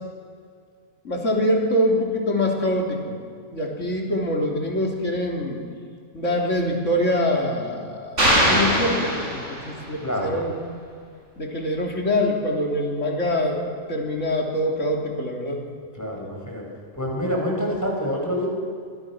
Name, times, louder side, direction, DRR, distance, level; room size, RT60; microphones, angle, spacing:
voice 1, 1.0-3.2 3.5-5.6 6.1-10.5 11.4-13.6 13.9-15.6, left 1 dB, 85° left, 0 dB, 3.7 m, -24 dB
sound 1, 8.2-9.9, equal, 75° right, 6.2 m, -21 dB
voice 2, 10.0-10.4 15.9-16.6 17.0-18.5, equal, 15° left, -1 dB, 5.6 m, -26 dB
25.5 x 21.0 x 6.1 m, 2.2 s
omnidirectional pair, 1.3 m